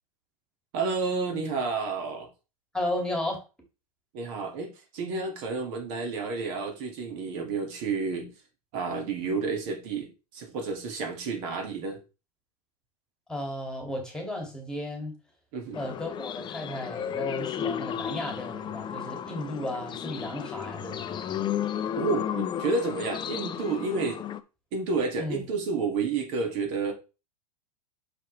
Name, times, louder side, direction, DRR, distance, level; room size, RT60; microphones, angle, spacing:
voice 1, 0.7-2.3 4.1-8.3 8.7-12.0 15.5-15.8 22.0-24.2 24.7-26.9, right 4 dB, 55° right, 3 dB, 2.0 m, -30 dB
voice 2, 2.7-3.4 13.3-15.1 15.7-21.4 25.2-25.4, left 1 dB, 5° left, 2 dB, 2.2 m, -34 dB
sound 1, 15.7-24.4, left 9 dB, 25° left, 0.5 m, -33 dB
5.8 x 5.5 x 3.2 m, 0.31 s
hypercardioid pair, 105°, 19 cm